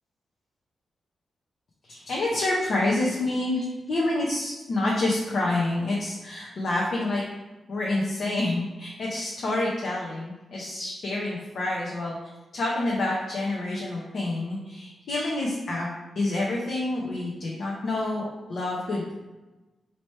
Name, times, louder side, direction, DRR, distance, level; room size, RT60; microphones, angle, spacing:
voice 1, 1.9-7.2 7.7-12.2 12.5-15.9 16.2-18.2 18.5-19.2, left 2 dB, 65° left, -4 dB, 0.8 m, -28 dB
4.2 x 2.9 x 3.2 m, 1.1 s
cardioid pair, 90°, 0 cm